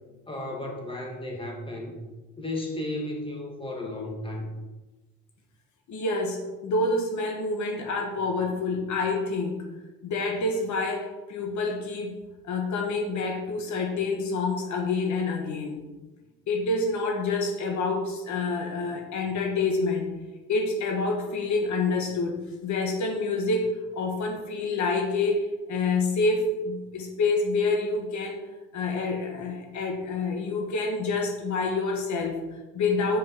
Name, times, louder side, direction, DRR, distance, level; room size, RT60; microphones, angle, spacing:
voice 1, 0.3-2.0 2.4-4.6, left 1 dB, 15° left, 0 dB, 2.4 m, -34 dB
voice 2, 5.9-9.7 10.0-12.2 12.4-15.8 16.5-20.2 20.5-28.4 28.7-33.2, left 3 dB, 70° left, 2 dB, 1.5 m, -27 dB
8.9 x 5.2 x 5.6 m, 1.2 s
cardioid pair, 90°, 30 cm